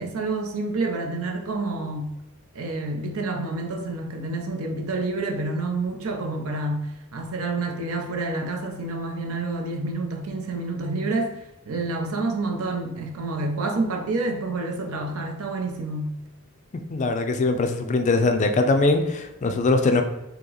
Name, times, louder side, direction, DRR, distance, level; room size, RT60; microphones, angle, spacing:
voice 1, 0.0-2.1 2.5-11.4 11.7-16.1, right 2 dB, 85° right, 3 dB, 0.6 m, -28 dB
voice 2, 16.9-20.0, left 3 dB, 35° left, 6 dB, 0.3 m, -21 dB
2.9 x 2.8 x 3.8 m, 0.95 s
head